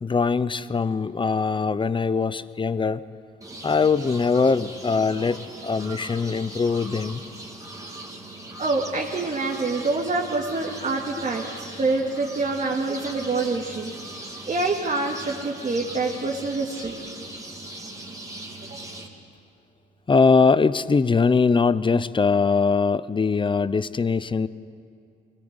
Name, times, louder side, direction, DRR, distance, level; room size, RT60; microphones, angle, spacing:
voice 1, 0.0-3.0 3.6-7.2 20.1-24.5, left 4 dB, 25° left, 16 dB, 0.6 m, -22 dB
sound 1, 3.4-19.1, right 1 dB, 15° right, 2.8 m, -39 dB
voice 2, 8.6-16.9 18.6-18.8, right 3 dB, 35° right, -1 dB, 2.0 m, -26 dB
23.0 x 17.5 x 8.1 m, 2.4 s
cardioid pair, 90°, 20 cm